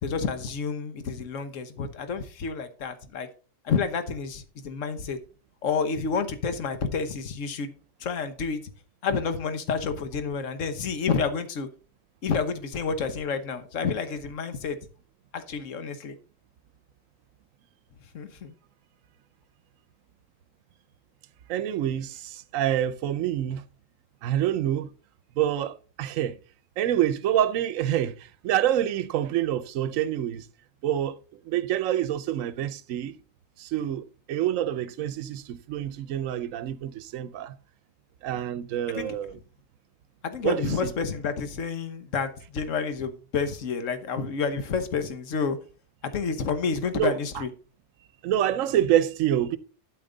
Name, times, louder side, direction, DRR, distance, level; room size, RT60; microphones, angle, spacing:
voice 1, 0.0-3.3 3.6-5.2 5.6-7.7 8.0-8.7 9.0-11.7 12.2-14.8 15.3-16.2 18.1-18.5 38.9-39.1 40.2-45.6 46.1-47.5, left 5 dB, 75° left, 1.4 m, -29 dB
voice 2, 21.5-23.6 24.2-24.9 25.4-26.3 26.8-28.1 28.4-30.4 30.8-31.2 31.5-33.1 33.6-37.5 38.2-39.3 40.4-40.9 46.9-47.4 48.2-49.6, right 11 dB, 80° right, 1.0 m, -27 dB
8.7 x 8.4 x 3.9 m
omnidirectional pair, 1.3 m